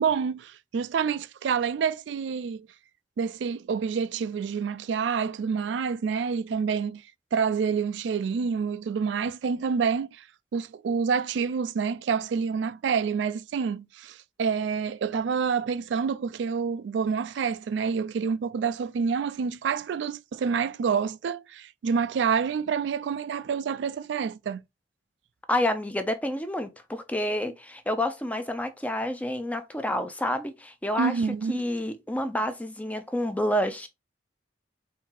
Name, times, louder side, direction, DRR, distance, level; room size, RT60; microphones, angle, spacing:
voice 1, 0.0-2.7 3.2-7.0 7.3-10.3 10.5-24.6 31.0-31.7, right 6 dB, 70° right, 0.3 m, -28 dB
voice 2, 25.5-31.1 31.5-33.9, left 1 dB, 10° left, 0.5 m, -29 dB
4.3 x 2.7 x 3.8 m
head